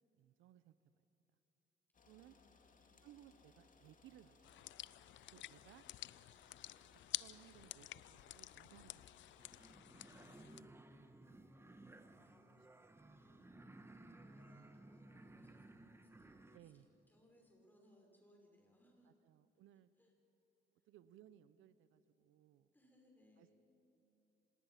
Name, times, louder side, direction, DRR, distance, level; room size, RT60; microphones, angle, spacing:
voice 1, 0.1-0.7 2.1-2.4 3.0-4.4 5.3-5.9 6.9-9.1 12.1-12.6 16.5-16.9 19.0-19.9 20.8-22.7 23.4-23.5, right 12 dB, 85° right, 15 dB, 0.6 m, -63 dB
sound 1, 1.9-9.8, left 4 dB, 40° left, 2.3 m, -68 dB
voice 2, 2.1-3.0 10.1-11.4 11.7-12.6 13.2-16.8 17.1-19.2 20.0-20.1 22.7-23.6, left 1 dB, 10° left, 0 dB, 5.8 m, -71 dB
sound 2, 4.4-10.6, left 15 dB, 70° left, 0.4 m, -50 dB
sound 3, 9.4-16.6, right 2 dB, 10° right, 1.2 m, -59 dB
26.5 x 19.5 x 5.8 m, 2.8 s
cardioid pair, 90°, 20 cm